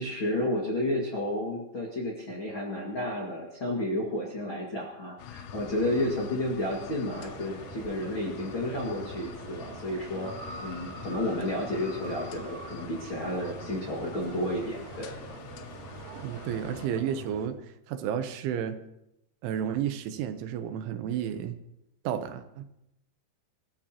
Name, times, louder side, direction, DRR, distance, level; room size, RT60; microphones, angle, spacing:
voice 1, 0.0-10.3 10.6-15.1, left 1 dB, 45° left, -4 dB, 1.7 m, -31 dB
sound 1, 5.2-16.9, left 9 dB, 75° left, 3.0 m, -45 dB
sound 2, 7.1-17.5, right 5 dB, 60° right, 2.6 m, -45 dB
sound 3, 10.1-13.8 14.6-14.7, right 1 dB, 15° right, 1.1 m, -46 dB
voice 2, 16.1-17.6 17.9-18.8 19.4-21.6 22.0-22.7, right 9 dB, 85° right, 9 dB, 3.4 m, -32 dB
26.0 x 15.0 x 3.0 m, 0.85 s
omnidirectional pair, 5.4 m